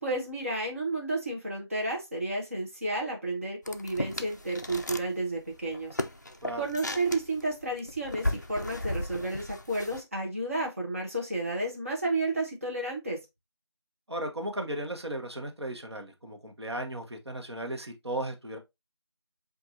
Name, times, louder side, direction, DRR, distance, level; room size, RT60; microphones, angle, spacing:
voice 1, 0.0-6.0 6.6-13.2, right 2 dB, 30° right, 0.9 m, -32 dB
sound 1, 3.7-5.1 5.4-10.0, left 1 dB, 40° left, 0.4 m, -35 dB
voice 2, 14.1-18.6, right 1 dB, 70° right, 1.1 m, -36 dB
7.4 x 2.6 x 2.6 m
figure-of-eight pair, 175°, 14 cm